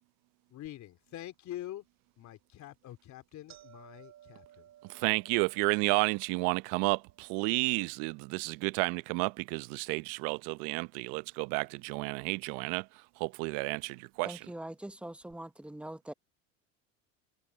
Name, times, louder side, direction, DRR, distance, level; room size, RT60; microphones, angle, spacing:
voice 1, 0.5-1.9 2.2-4.7, left 13 dB, 45° left, 3.1 m, -45 dB
sound 1, 0.6-0.7 1.3-1.4 2.2-2.4 2.7-2.8 3.1-11.3 11.6-12.3 13.1-13.2 14.2-14.3 14.5-14.6 15.2-15.3, right 12 dB, 45° right, 7.2 m, -61 dB
voice 2, 4.8-12.9 13.2-14.4, right 26 dB, 65° right, 0.9 m, -31 dB
voice 3, 14.2-16.1, right 1 dB, 5° right, 0.8 m, -43 dB
supercardioid pair, 110°, 39 cm